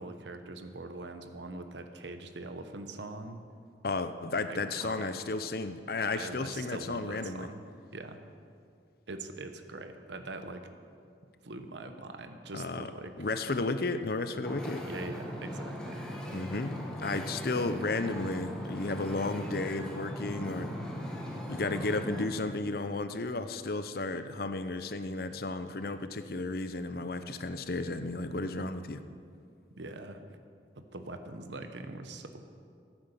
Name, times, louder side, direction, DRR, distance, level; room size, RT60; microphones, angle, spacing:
voice 1, 0.0-3.4 4.5-5.1 6.1-7.6 7.9-8.2 9.1-10.7 11.4-13.6 14.9-16.0 29.8-30.2 30.7-32.4, right 2 dB, 75° right, 8 dB, 1.0 m, -43 dB
voice 2, 3.8-7.5 12.5-12.9 13.2-14.8 16.3-20.7 21.5-29.0, left 3 dB, 55° left, 10 dB, 0.7 m, -33 dB
Wind / Ocean, 14.4-22.3, equal, 5° left, 1.6 m, -39 dB
13.5 x 9.4 x 6.8 m, 2.3 s
head